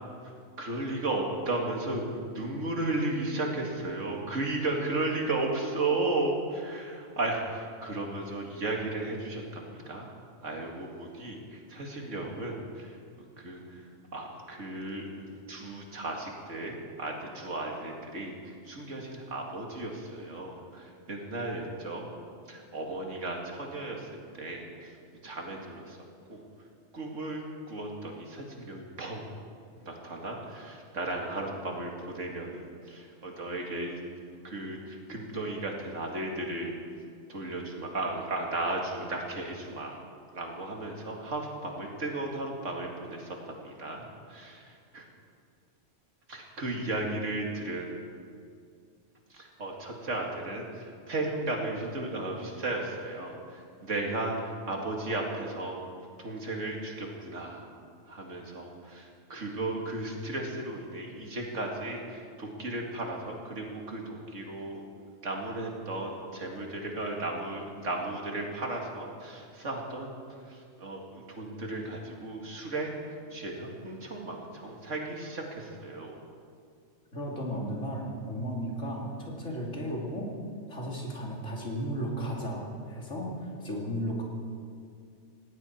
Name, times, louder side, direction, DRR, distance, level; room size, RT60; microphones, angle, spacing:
voice 1, 0.6-10.1 10.4-13.0 13.4-13.8 14.1-22.0 22.5-24.1 24.3-25.0 25.2-26.0 26.3-26.4 26.9-29.3 29.8-34.0 34.4-36.7 37.3-40.0 40.3-45.1 46.3-47.9 49.3-55.8 56.2-57.7 58.1-64.8 65.2-70.1 70.5-76.1, right 2 dB, 85° right, 0 dB, 2.6 m, -35 dB
voice 2, 77.1-80.3 80.7-84.2, equal, 85° left, -3 dB, 3.3 m, -34 dB
18.5 x 17.5 x 4.5 m, 2.3 s
omnidirectional pair, 1.3 m